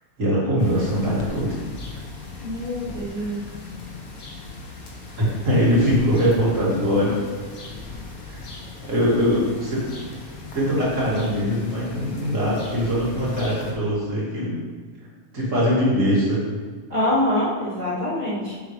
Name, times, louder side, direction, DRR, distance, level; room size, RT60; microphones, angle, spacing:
voice 1, 0.2-1.6 3.1-3.3 5.2-7.1 8.3-8.4 8.8-9.8 10.5-14.6 15.3-16.5, equal, 55° right, -7 dB, 3.0 m, -22 dB
sound 1, 0.6-13.7, left 3 dB, 70° left, 1.9 m, -39 dB
sound 2, 1.1-2.4 2.6-3.4 5.6-6.8 7.6-8.4, left 2 dB, 35° left, 1.2 m, -41 dB
voice 2, 2.4-3.4 9.2-9.3 16.9-18.5, left 1 dB, 30° right, -9 dB, 2.9 m, -25 dB
9.7 x 7.7 x 3.4 m, 1.5 s
omnidirectional pair, 1.5 m